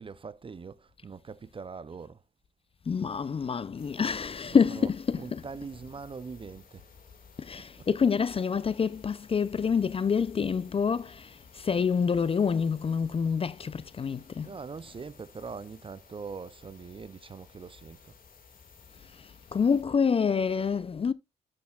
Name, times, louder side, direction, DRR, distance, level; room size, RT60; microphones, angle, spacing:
voice 1, 0.0-2.2 4.5-6.9 7.6-7.9 14.4-18.1, right 5 dB, 25° right, 0.5 m, -42 dB
voice 2, 2.9-5.4 7.4-14.5 19.5-21.1, left 6 dB, 30° left, 0.4 m, -27 dB
sound 1, 3.8-19.8, left 5 dB, 45° left, 2.0 m, -55 dB
12.5 x 6.3 x 2.3 m
cardioid pair, 90°, 20 cm